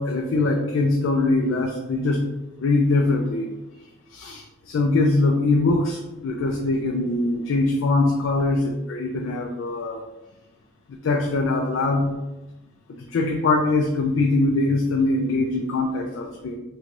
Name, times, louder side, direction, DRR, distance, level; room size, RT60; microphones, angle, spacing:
voice 1, 0.0-2.3 2.6-3.5 4.1-10.0 11.0-12.1 12.9-16.6, left 2 dB, 65° left, 1 dB, 0.4 m, -22 dB
3.8 x 2.3 x 3.1 m, 1.0 s
head